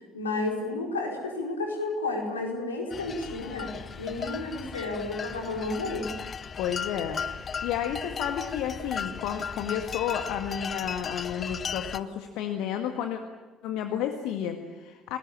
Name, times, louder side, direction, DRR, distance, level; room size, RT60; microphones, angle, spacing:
voice 1, 0.1-3.7 4.0-6.1, left 2 dB, 80° left, 0 dB, 4.7 m, -31 dB
sound 1, 2.9-12.0, left 6 dB, 40° left, 1.0 m, -36 dB
voice 2, 6.6-13.2 13.6-15.2, left 9 dB, 60° left, 5 dB, 1.8 m, -31 dB
28.5 x 20.0 x 8.7 m, 1.2 s
figure-of-eight pair, 50°, 0 cm